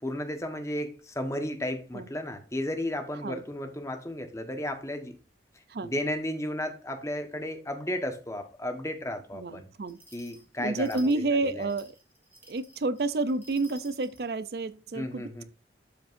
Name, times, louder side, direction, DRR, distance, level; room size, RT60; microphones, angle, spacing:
voice 1, 0.0-5.1 5.8-9.7 10.1-11.7 14.9-15.4, left 1 dB, 15° left, 1.2 m, -34 dB
voice 2, 9.3-10.0 10.6-12.0 12.5-15.4, right 3 dB, 60° right, 0.5 m, -30 dB
sound 1, 9.9-14.3, right 2 dB, 10° right, 2.1 m, -53 dB
12.5 x 5.1 x 2.6 m
head